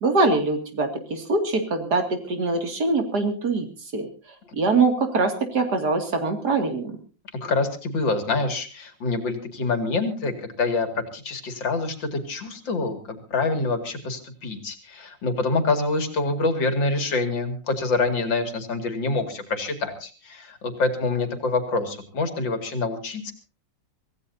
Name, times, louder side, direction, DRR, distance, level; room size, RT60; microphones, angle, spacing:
voice 1, 0.0-3.7 3.9-4.1 4.5-7.0, right 3 dB, 60° right, 6 dB, 3.0 m, -23 dB
voice 2, 7.4-23.3, left 3 dB, 80° left, 7 dB, 3.2 m, -26 dB
25.0 x 16.5 x 2.7 m, 0.35 s
omnidirectional pair, 2.0 m